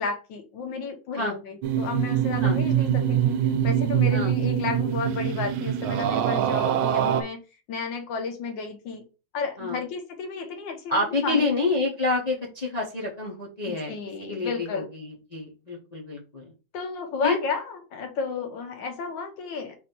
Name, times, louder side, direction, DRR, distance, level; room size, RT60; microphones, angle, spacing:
voice 1, 0.0-7.4 7.7-9.0 9.3-11.6 13.6-14.9 16.7-19.8, left 5 dB, 70° left, 6 dB, 1.6 m, -32 dB
sound 1, 1.6-7.2, right 9 dB, 85° right, 1.4 m, -24 dB
voice 2, 10.9-13.9 14.3-16.4 17.2-17.4, left 2 dB, 35° left, -4 dB, 0.7 m, -28 dB
4.1 x 2.7 x 4.3 m, 0.32 s
omnidirectional pair, 2.1 m